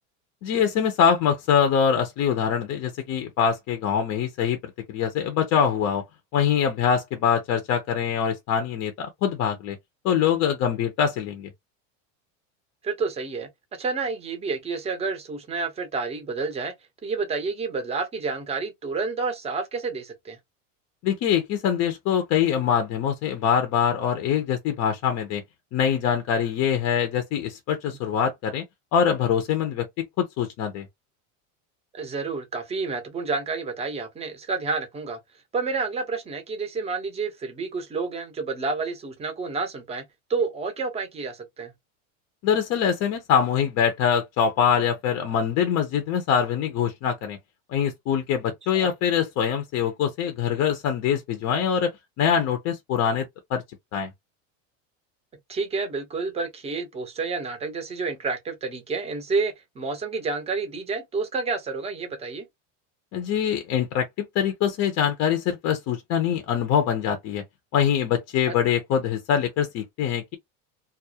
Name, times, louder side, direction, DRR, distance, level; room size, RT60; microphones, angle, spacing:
voice 1, 0.4-6.0 6.3-9.8 10.0-11.5 21.0-25.4 25.7-28.6 28.9-29.9 30.2-30.9 42.4-47.4 47.7-51.9 52.2-53.6 53.9-54.1 63.1-64.1 64.3-67.4 67.7-70.4, left 8 dB, 40° left, 0.5 m, -24 dB
voice 2, 12.8-16.7 17.0-20.4 31.9-35.2 35.5-41.7 48.7-48.9 55.5-62.5 68.5-68.6, right 4 dB, 15° right, 0.6 m, -29 dB
2.3 x 2.0 x 2.6 m
supercardioid pair, 130°, 39 cm